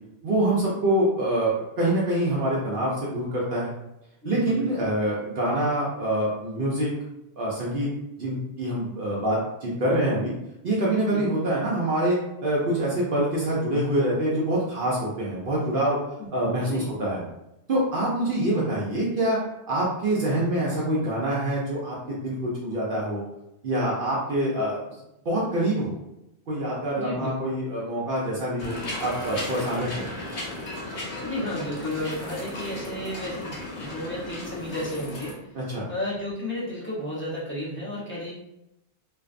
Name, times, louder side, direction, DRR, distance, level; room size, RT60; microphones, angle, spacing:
voice 1, 0.2-3.7 4.2-6.9 7.4-7.9 8.2-10.3 10.6-16.0 16.3-17.2 17.7-19.4 19.7-23.2 23.6-24.8 25.2-26.0 26.5-30.1 35.5-35.8, right 1 dB, 60° right, -5 dB, 0.7 m, -25 dB
voice 2, 4.2-4.9 11.1-11.2 16.5-16.9 27.0-27.3 31.2-35.4 35.9-38.3, left 1 dB, 15° left, -8 dB, 0.7 m, -33 dB
sound 1, 28.6-35.3, left 2 dB, 90° left, 1.0 m, -35 dB
2.5 x 2.2 x 2.4 m, 0.88 s
omnidirectional pair, 1.1 m